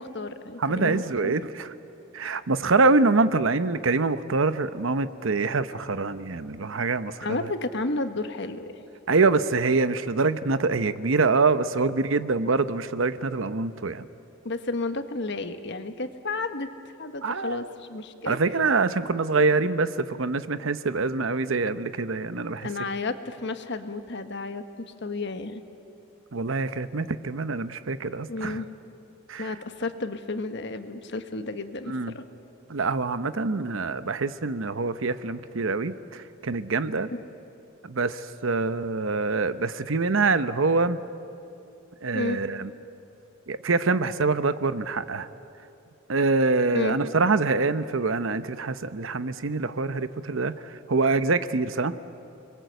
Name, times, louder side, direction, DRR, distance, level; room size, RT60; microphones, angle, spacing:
voice 1, 0.0-1.4 2.2-2.3 7.2-8.7 14.4-16.7 17.0-18.4 22.6-24.6 25.0-25.6 28.3-28.7 29.4-32.2 37.1-37.2 42.1-42.4 46.7-47.0, left 3 dB, 55° left, 9 dB, 1.3 m, -32 dB
voice 2, 0.6-1.7 2.1-7.5 9.1-14.0 17.2-17.6 18.3-22.7 26.3-28.6 29.3-29.5 31.9-32.1 32.7-37.1 37.8-41.0 42.0-42.7 43.5-45.3 46.1-50.5 50.9-52.0, right 3 dB, 70° right, 13 dB, 0.8 m, -25 dB
29.5 x 21.5 x 8.1 m, 2.7 s
head